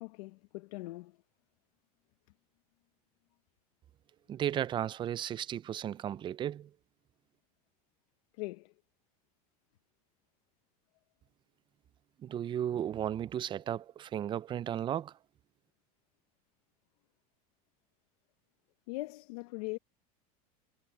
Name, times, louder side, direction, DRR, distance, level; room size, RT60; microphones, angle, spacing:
voice 1, 0.0-1.2 8.3-8.7 18.9-19.8, left 23 dB, 70° left, 1.0 m, -41 dB
voice 2, 4.3-6.7 12.2-15.1, right 10 dB, 25° right, 0.4 m, -34 dB
supercardioid pair, 125°, 20 cm